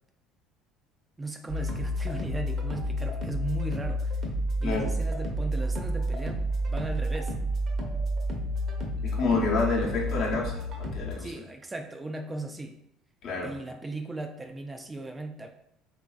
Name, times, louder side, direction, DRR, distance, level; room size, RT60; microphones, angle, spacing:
voice 1, 1.2-4.2 4.6-7.3 11.2-12.8 13.4-15.5, right 2 dB, 20° right, 4 dB, 0.3 m, -37 dB
sound 1, 1.5-11.1, equal, 50° right, 0.7 m, -30 dB
voice 2, 4.6-4.9 9.1-11.3 13.2-13.5, left 3 dB, 60° left, -2 dB, 0.8 m, -28 dB
3.1 x 2.5 x 2.4 m, 0.77 s
hypercardioid pair, 75°, 0 cm